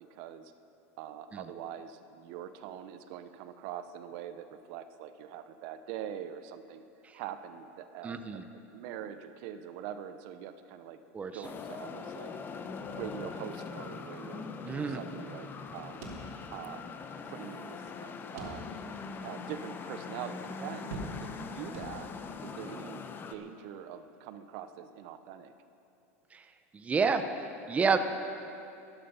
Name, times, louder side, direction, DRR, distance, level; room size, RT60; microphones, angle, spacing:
voice 1, 0.1-0.5 1.0-6.8 7.1-11.0 11.3-12.3 12.8-14.4 14.7-16.0 16.5-16.9 17.2-22.1 22.4-25.5, right 9 dB, 60° right, 10 dB, 0.7 m, -44 dB
voice 2, 8.0-8.4 11.1-11.4 14.6-15.0 26.3-26.5 26.7-28.0, right 5 dB, 20° right, 8 dB, 0.8 m, -30 dB
sound 1, 11.4-23.3, left 5 dB, 25° left, 0.9 m, -42 dB
sound 2, 16.0-16.9 17.2-17.3 18.4-19.0 19.5-19.6 20.9-21.5 21.7-22.4, right 2 dB, 75° right, 2.9 m, -43 dB
13.5 x 13.0 x 5.6 m, 2.6 s
supercardioid pair, 125°, 8 cm